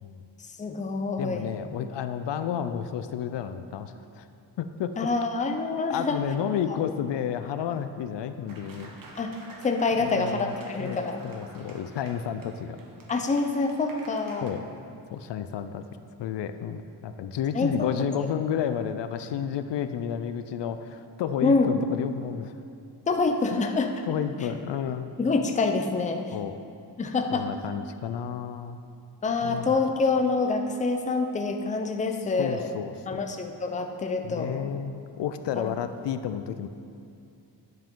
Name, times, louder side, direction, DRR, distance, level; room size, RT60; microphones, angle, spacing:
voice 1, 0.6-1.5 5.0-6.2 6.7-6.8 9.2-9.3 9.6-11.2 13.1-14.5 17.5-17.9 21.4-21.7 23.1-23.9 25.2-26.4 27.0-27.5 29.2-32.7 33.1-34.7 35.5-35.7, left 3 dB, 15° left, 4 dB, 0.5 m, -26 dB
voice 2, 1.2-4.2 4.6-5.0 5.9-8.9 10.0-10.5 10.8-12.8 14.4-14.7 15.1-15.8 16.2-22.5 24.1-25.1 26.3-26.6 27.3-28.8 29.4-29.7 32.4-33.2 34.2-36.7, left 8 dB, 70° left, 10 dB, 0.5 m, -31 dB
Applause, 8.5-14.5, right 2 dB, 50° right, 1.1 m, -49 dB
10.0 x 7.5 x 3.7 m, 2.5 s
wide cardioid pair, 145°, 44 cm